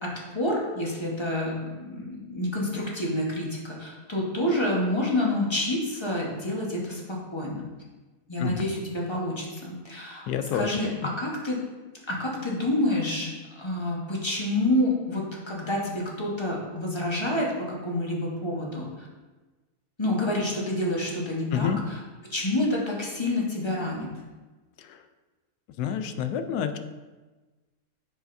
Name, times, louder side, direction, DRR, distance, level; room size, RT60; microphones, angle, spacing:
voice 1, 0.0-7.6 8.3-11.6 12.1-19.1 20.0-21.7 22.2-24.1, left 1 dB, 20° left, -3 dB, 1.1 m, -28 dB
voice 2, 10.3-10.8 21.5-21.8 24.8-25.0 25.8-26.8, left 8 dB, 90° left, 8 dB, 1.1 m, -28 dB
9.2 x 4.8 x 2.6 m, 1.2 s
omnidirectional pair, 1.6 m